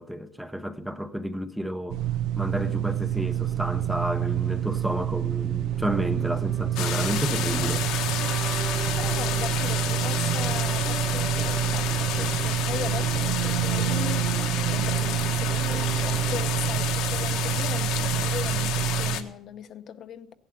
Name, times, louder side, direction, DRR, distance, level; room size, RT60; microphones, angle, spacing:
voice 1, 0.0-2.0 2.4-7.9, equal, 5° right, 0.7 m, -31 dB
sound 1, 1.9-19.2, right 12 dB, 80° right, 0.8 m, -27 dB
sound 2, 4.1-17.0, right 8 dB, 30° right, 1.3 m, -37 dB
sound 3, 6.8-19.2, left 11 dB, 75° left, 1.4 m, -31 dB
voice 2, 9.0-14.3 14.7-20.3, left 9 dB, 50° left, 0.8 m, -38 dB
17.5 x 11.0 x 5.7 m
cardioid pair, 150°, 0 cm